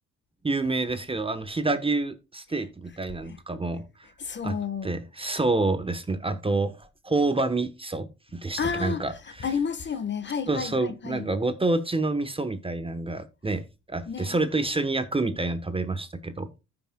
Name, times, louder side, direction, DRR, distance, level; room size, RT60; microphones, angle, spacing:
voice 1, 0.4-3.8 4.4-4.6 4.8-9.5 10.5-16.6, right 2 dB, 20° right, 1.0 m, -28 dB
voice 2, 4.2-5.0 8.6-9.0 9.4-11.3 14.1-14.3, left 6 dB, 35° left, 1.3 m, -31 dB
14.5 x 5.8 x 2.2 m
cardioid pair, 90°, 30 cm